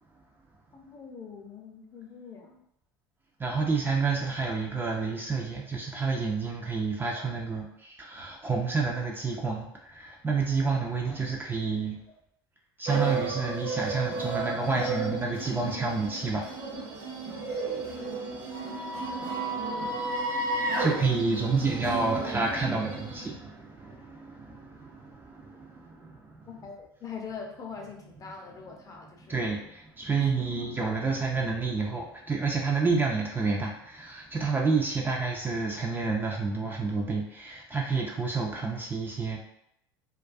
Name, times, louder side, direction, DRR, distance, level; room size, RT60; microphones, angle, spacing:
voice 1, 0.7-2.6 7.2-7.3 26.5-29.4 30.8-31.0, left 5 dB, 30° left, 1 dB, 0.5 m, -43 dB
voice 2, 3.4-12.0 12.8-16.7 17.1-26.5 29.3-39.4, right 4 dB, 15° right, -1 dB, 0.4 m, -30 dB
sound 1, 12.9-23.3, right 3 dB, 55° right, 0.8 m, -33 dB
2.3 x 2.2 x 2.4 m, 0.76 s
hypercardioid pair, 80°, 12 cm